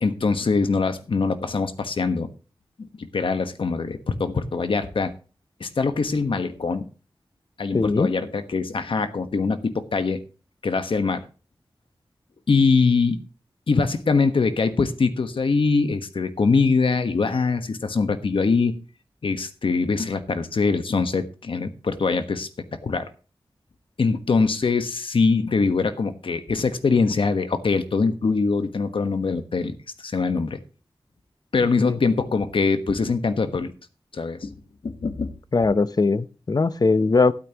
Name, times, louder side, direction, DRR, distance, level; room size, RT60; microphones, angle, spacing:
voice 1, 0.0-2.3 2.8-5.1 5.6-6.9 7.6-10.2 10.6-11.2 12.5-13.2 13.7-18.7 19.2-22.5 22.8-23.1 24.0-29.7 30.0-30.6 31.5-33.7 34.1-34.5 34.8-35.3, left 4 dB, 75° left, 1.3 m, -23 dB
voice 2, 7.7-8.1 31.6-32.0 35.5-37.3, left 3 dB, 45° left, 0.8 m, -20 dB
13.0 x 12.5 x 3.0 m
wide cardioid pair, 100°, 9 cm